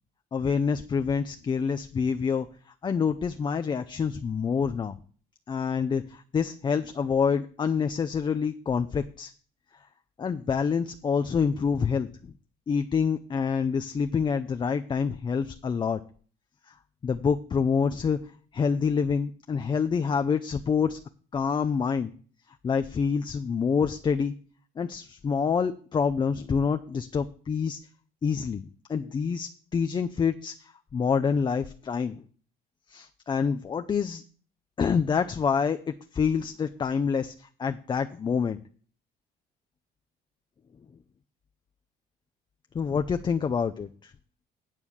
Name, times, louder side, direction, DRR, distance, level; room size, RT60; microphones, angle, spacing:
voice 1, 0.3-2.5 2.8-5.0 5.5-9.3 10.2-12.3 12.7-16.0 17.0-18.2 18.5-21.0 21.3-22.1 22.6-24.3 24.8-27.8 28.2-28.6 28.9-32.2 32.9-34.2 34.8-38.6 42.7-44.1, left 6 dB, 25° left, 8 dB, 0.5 m, -27 dB
9.0 x 5.6 x 6.4 m, 0.43 s
cardioid pair, 110°, 17 cm